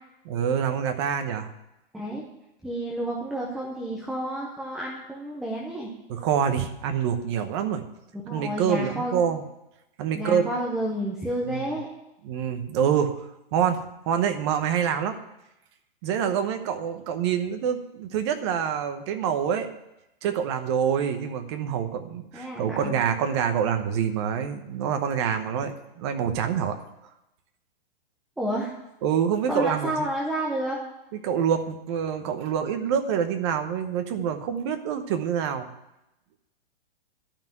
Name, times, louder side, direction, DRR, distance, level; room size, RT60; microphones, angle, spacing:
voice 1, 0.2-1.5 6.1-7.8 8.3-9.4 10.0-10.6 11.5-11.7 12.2-13.1 13.5-15.2 16.0-19.7 20.2-26.8 29.0-30.1 31.2-35.7, right 8 dB, 25° right, 7 dB, 0.9 m, -26 dB
voice 2, 2.6-5.9 8.3-9.3 10.1-11.9 22.3-22.9 28.4-28.7 29.5-30.8, right 1 dB, ahead, -3 dB, 0.5 m, -30 dB
12.0 x 5.9 x 9.1 m, 0.89 s
hypercardioid pair, 170°, 30 cm